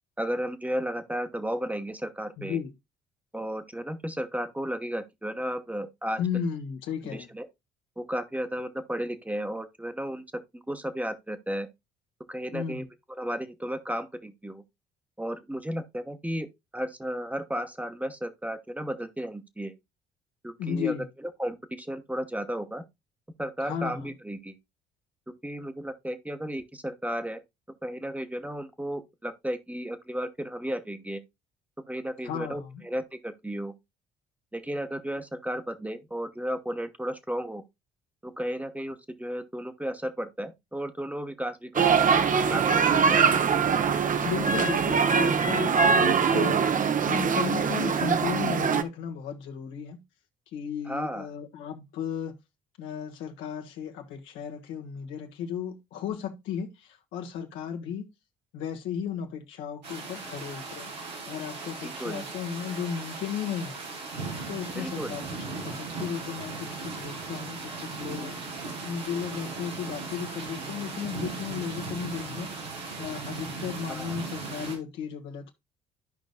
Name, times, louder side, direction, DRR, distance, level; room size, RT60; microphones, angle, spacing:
voice 1, 0.2-2.6 3.3-6.2 7.0-7.5 8.0-10.2 10.5-11.7 12.3-14.6 15.2-16.5 16.7-19.7 20.4-20.9 21.2-22.8 23.4-24.6 25.4-27.4 27.8-31.2 31.9-33.7 34.5-37.6 38.2-42.1 42.5-43.3 50.8-51.3 61.8-62.3 64.7-65.2 73.9-74.2, equal, 5° right, 1.1 m, -34 dB
voice 2, 2.4-2.7 6.2-7.3 12.5-12.8 20.6-21.1 23.6-24.1 32.2-32.7 44.2-50.0 50.5-52.3 52.8-58.1 58.5-60.9 61.3-63.8 64.5-65.2 65.5-68.4 68.8-72.6 73.0-75.5, left 7 dB, 70° left, 1.4 m, -35 dB
sound 1, 41.7-48.8, right 6 dB, 40° right, 0.9 m, -23 dB
sound 2, 59.8-74.8, right 3 dB, 90° right, 2.0 m, -37 dB
13.5 x 5.2 x 2.2 m
hypercardioid pair, 50°, 21 cm